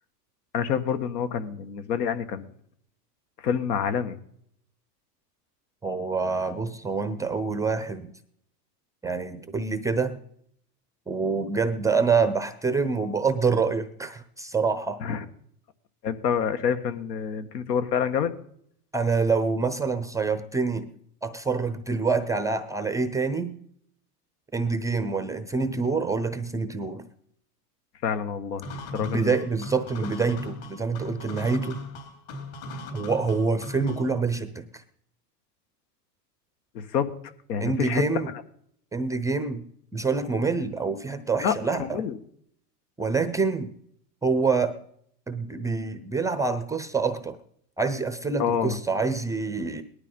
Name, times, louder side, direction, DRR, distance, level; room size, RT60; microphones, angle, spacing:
voice 1, 0.5-2.5 3.4-4.2 15.0-15.3 16.0-18.3 28.0-28.6 28.9-29.3 36.7-37.1 37.5-38.0 41.4-41.5 41.8-42.2 48.4-48.8, left 7 dB, 75° left, 10 dB, 1.9 m, -27 dB
voice 2, 5.8-8.1 9.0-10.2 11.1-15.0 18.9-20.9 21.2-23.6 24.5-27.0 29.0-31.8 32.9-34.8 37.6-38.3 38.9-42.0 43.0-43.7 44.2-44.7 45.3-47.4 47.8-49.8, right 4 dB, 5° right, 11 dB, 0.6 m, -26 dB
sound 1, 28.6-34.2, left 2 dB, 50° left, 4.1 m, -38 dB
19.0 x 12.0 x 5.4 m, 0.68 s
supercardioid pair, 140°, 48 cm